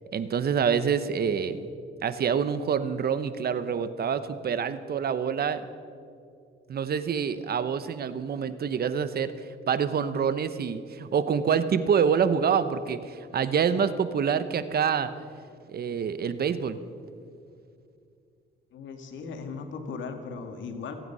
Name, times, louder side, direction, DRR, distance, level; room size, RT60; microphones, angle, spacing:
voice 1, 0.1-1.7 2.0-5.6 6.7-9.3 9.7-15.1 15.7-16.8, right 7 dB, 50° right, 13 dB, 1.0 m, -26 dB
voice 2, 18.7-20.9, left 5 dB, 70° left, 5 dB, 1.9 m, -37 dB
27.5 x 9.3 x 5.5 m, 2.4 s
cardioid pair, 90°, 20 cm